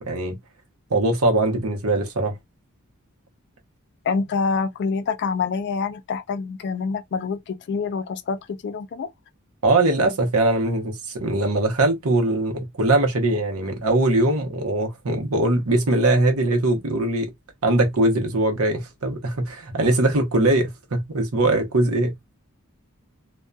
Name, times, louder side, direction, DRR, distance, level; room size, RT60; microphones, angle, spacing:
voice 1, 0.9-2.3 9.6-17.3 17.6-22.1, right 2 dB, 75° right, 0.8 m, -21 dB
voice 2, 4.0-9.1, left 5 dB, 50° left, 0.3 m, -26 dB
2.6 x 2.2 x 2.2 m
head